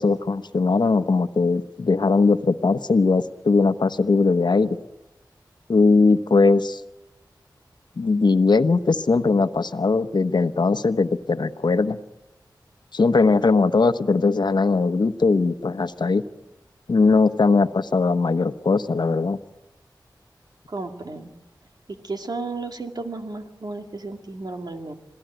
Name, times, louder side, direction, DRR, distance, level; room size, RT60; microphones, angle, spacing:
voice 1, 0.0-4.8 5.7-6.8 8.0-12.0 12.9-16.2 16.9-19.4, left 4 dB, 70° left, 10 dB, 1.1 m, -20 dB
voice 2, 20.7-21.3 21.9-24.9, right 3 dB, 60° right, 5 dB, 2.4 m, -33 dB
26.5 x 17.5 x 9.1 m, 0.97 s
wide cardioid pair, 65°, 8 cm